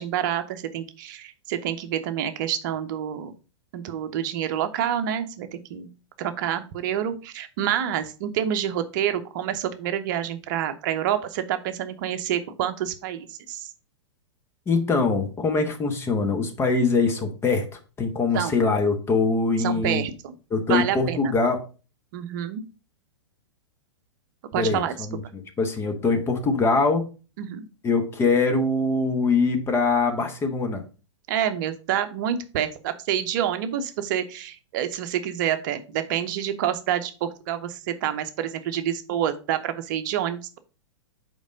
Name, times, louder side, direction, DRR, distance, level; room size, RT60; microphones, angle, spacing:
voice 1, 0.0-3.3 3.7-5.9 6.2-13.7 18.3-18.5 19.6-20.3 20.7-21.3 22.1-22.6 24.5-24.9 27.4-27.7 31.3-40.6, right 10 dB, 40° right, 9 dB, 0.8 m, -28 dB
voice 2, 14.7-20.0 20.5-21.6 24.6-27.1 27.8-30.8, left 4 dB, 15° left, 5 dB, 0.9 m, -23 dB
5.2 x 4.6 x 5.1 m, 0.34 s
figure-of-eight pair, 105°, 15 cm